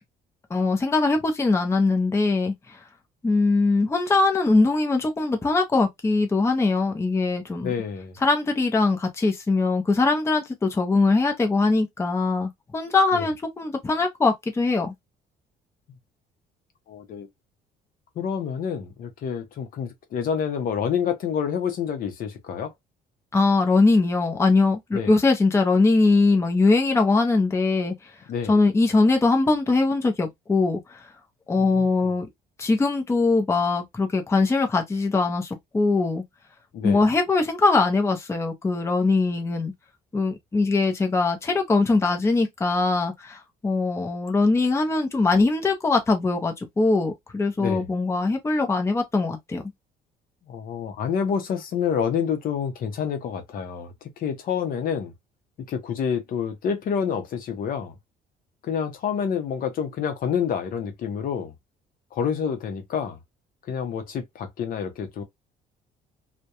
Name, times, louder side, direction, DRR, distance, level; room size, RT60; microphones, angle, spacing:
voice 1, 0.5-2.8 3.2-7.7 8.2-14.9 23.3-27.9 28.5-31.0 31.5-32.3 32.6-36.2 36.8-39.7 40.1-49.6, left 3 dB, 15° left, 0.6 m, -21 dB
voice 2, 7.6-8.2 13.1-13.3 16.9-17.3 18.2-22.7 24.9-25.1 28.3-28.6 31.6-31.8 36.7-37.0 47.6-47.9 50.5-55.1 55.7-57.9 58.6-61.5 62.1-63.2 63.7-65.2, left 7 dB, 55° left, 0.7 m, -28 dB
2.3 x 2.1 x 2.8 m
cardioid pair, 110°, 17 cm